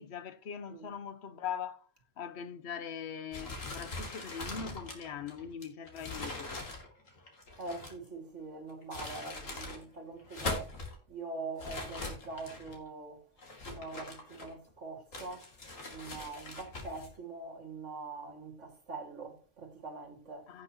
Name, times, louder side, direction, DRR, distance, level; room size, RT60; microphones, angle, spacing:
voice 1, 0.0-1.9 2.2-6.6 20.5-20.6, left 7 dB, 60° left, 1.1 m, -41 dB
sound 1, 3.3-8.1 8.7-9.8 10.2-10.9 11.6-12.8 13.4-14.7 15.1-17.1, left 2 dB, 80° left, 2.9 m, -42 dB
voice 2, 7.6-10.7 11.1-13.2 13.7-15.5 15.9-20.5, right 3 dB, 65° right, 2.5 m, -43 dB
17.0 x 6.3 x 2.9 m
omnidirectional pair, 1.3 m